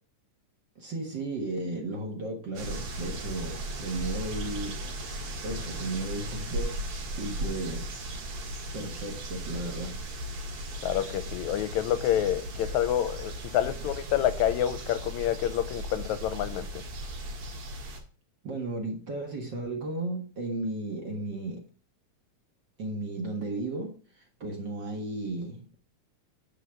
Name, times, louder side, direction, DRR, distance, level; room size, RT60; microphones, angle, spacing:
voice 1, 0.8-4.8 5.4-6.8 7.2-7.9 8.7-10.1 18.4-21.6 22.8-25.7, right 2 dB, 45° right, 1.7 m, -34 dB
sound 1, 2.6-18.0, right 1 dB, 65° right, 3.0 m, -37 dB
voice 2, 10.8-16.8, left 11 dB, 80° left, 1.8 m, -28 dB
10.0 x 4.0 x 5.8 m
omnidirectional pair, 3.6 m